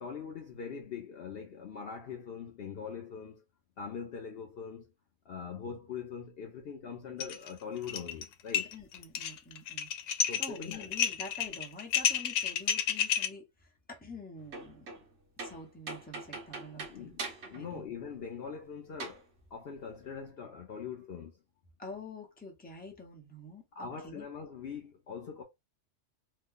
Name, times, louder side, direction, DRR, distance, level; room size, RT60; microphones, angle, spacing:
voice 1, 0.0-3.4 3.8-4.9 5.3-8.7 10.3-10.9 16.9-19.3 19.5-21.4 23.7-25.4, left 6 dB, 60° left, 0.7 m, -42 dB
sound 1, 7.2-7.5 7.8-8.2 8.5-13.3, left 8 dB, 90° left, 1.0 m, -30 dB
voice 2, 8.7-9.9 10.4-14.9 15.4-17.1 17.5-17.8 21.8-24.3, left 2 dB, 10° left, 0.8 m, -47 dB
sound 2, 14.4-15.1 15.4-17.7 18.0-18.1 19.0-19.2, right 3 dB, 65° right, 1.1 m, -42 dB
3.0 x 2.2 x 3.6 m
omnidirectional pair, 1.2 m